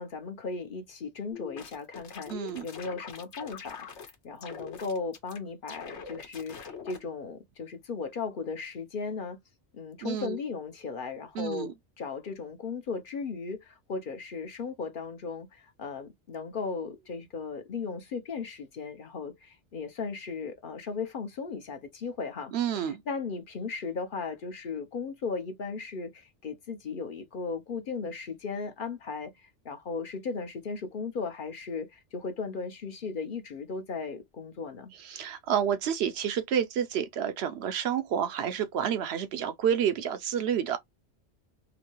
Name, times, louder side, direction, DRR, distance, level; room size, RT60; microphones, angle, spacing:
voice 1, 0.0-3.9 4.2-9.4 9.7-22.5 22.9-34.9, left 4 dB, 55° left, 0.7 m, -36 dB
sound 1, 1.3-4.1 4.4-5.4 5.7-7.0, left 6 dB, 80° left, 1.2 m, -43 dB
voice 2, 2.3-2.6 10.0-10.4 11.3-11.7 22.5-23.0 35.0-40.8, right 8 dB, 70° right, 0.8 m, -29 dB
2.9 x 2.7 x 2.9 m
omnidirectional pair, 1.2 m